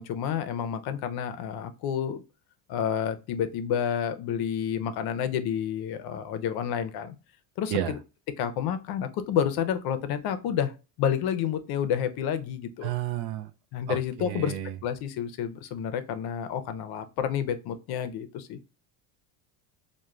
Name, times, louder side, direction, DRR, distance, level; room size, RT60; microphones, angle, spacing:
voice 1, 0.0-2.2 2.7-7.1 7.6-8.0 8.4-12.9 13.7-14.5 14.8-18.6, left 8 dB, 60° left, 0.5 m, -29 dB
voice 2, 12.8-13.5 13.9-14.7, right 12 dB, 60° right, 0.5 m, -31 dB
2.3 x 2.2 x 3.0 m
cardioid pair, 120°, 44 cm